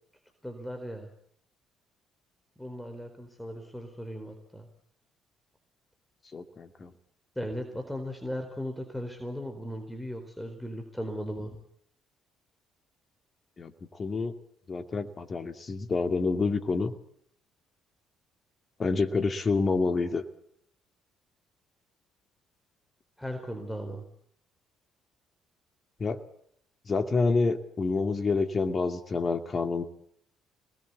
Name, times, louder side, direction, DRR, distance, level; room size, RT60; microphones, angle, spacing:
voice 1, 0.4-1.1 2.6-4.7 7.3-11.6 23.2-24.1, equal, 5° left, 5 dB, 4.3 m, -37 dB
voice 2, 6.3-6.9 13.6-13.7 14.0-14.3 14.7-16.9 18.8-20.2 26.0-26.2 26.9-29.8, left 4 dB, 35° left, 8 dB, 2.5 m, -28 dB
27.0 x 20.0 x 8.4 m, 0.69 s
figure-of-eight pair, 50°, 0 cm